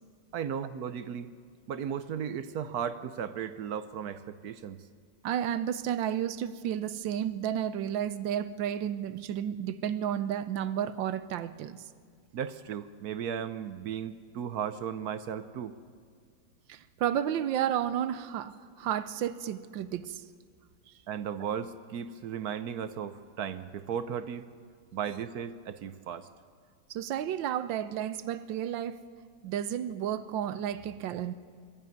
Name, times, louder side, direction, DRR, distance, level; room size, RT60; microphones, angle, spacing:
voice 1, 0.3-1.3 1.7-4.8 12.3-15.7 21.1-24.5 24.9-26.3, right 8 dB, 65° right, 1.1 m, -35 dB
voice 2, 5.2-11.8 16.7-20.2 26.9-29.0 29.4-31.3, right 10 dB, 80° right, 1.4 m, -32 dB
22.5 x 13.5 x 9.3 m
omnidirectional pair, 2.0 m